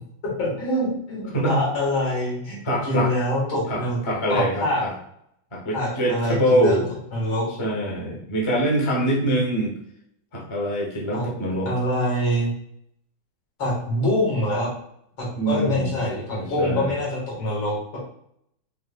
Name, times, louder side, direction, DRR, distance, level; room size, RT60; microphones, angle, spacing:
voice 1, 0.2-4.0 4.3-4.8 5.7-6.8 7.1-7.5 11.1-11.3 11.6-12.5 13.6-14.7 15.2-18.0, left 1 dB, 75° left, -5 dB, 2.6 m, -25 dB
voice 2, 2.6-3.1 3.7-4.9 5.5-6.9 7.6-9.7 10.3-11.7 15.4-15.9 16.3-17.0, right 1 dB, 30° left, -3 dB, 0.5 m, -24 dB
5.3 x 3.5 x 2.4 m, 0.74 s
omnidirectional pair, 2.2 m